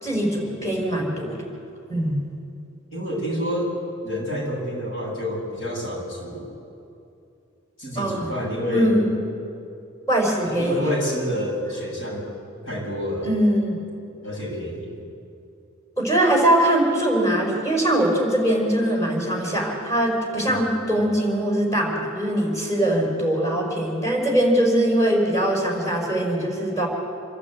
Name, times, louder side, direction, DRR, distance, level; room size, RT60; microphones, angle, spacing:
voice 1, 0.0-1.4 1.9-2.2 7.9-8.3 8.7-9.0 10.1-10.8 13.2-13.8 16.0-26.9, right 1 dB, 15° left, -2 dB, 4.7 m, -22 dB
voice 2, 2.9-3.8 4.0-6.5 7.8-8.9 10.4-12.3 12.7-13.3 14.2-15.0 20.4-20.8, equal, 85° left, -3 dB, 6.9 m, -28 dB
26.5 x 12.0 x 8.5 m, 2.6 s
head